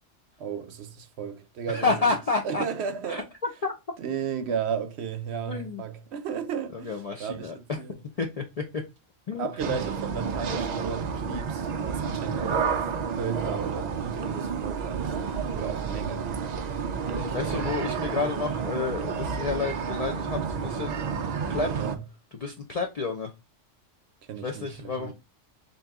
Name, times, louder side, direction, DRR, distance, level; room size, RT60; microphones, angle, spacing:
voice 1, 0.4-2.1 2.4-3.3 4.0-7.9 9.4-12.9 13.2-15.2 15.5-16.4 17.1-17.8 21.6-22.0 24.3-25.1, right 7 dB, 65° right, 0.8 m, -34 dB
voice 2, 1.7-2.7 3.1-3.2 3.6-3.7 5.5-5.9 6.7-7.8 8.2-8.8 9.3-9.8 17.1-21.0 21.5-21.7 22.3-23.3 24.4-25.1, left 4 dB, 55° left, 0.4 m, -30 dB
sound 1, 9.6-22.0, right 6 dB, 80° right, 0.3 m, -30 dB
3.9 x 2.8 x 3.4 m
omnidirectional pair, 1.3 m